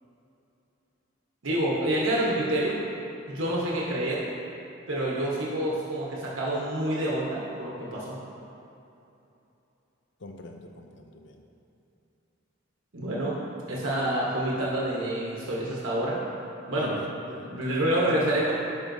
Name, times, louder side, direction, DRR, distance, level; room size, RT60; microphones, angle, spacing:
voice 1, 1.4-2.8 3.3-4.3 4.9-8.2 12.9-13.4 13.7-16.2 16.7-16.9 17.5-18.5, right 1 dB, 90° right, -5 dB, 1.1 m, -27 dB
voice 2, 10.2-11.4 16.8-17.6 17.9-18.3, left 2 dB, 65° left, 3 dB, 0.6 m, -43 dB
11.0 x 5.3 x 2.7 m, 2.8 s
head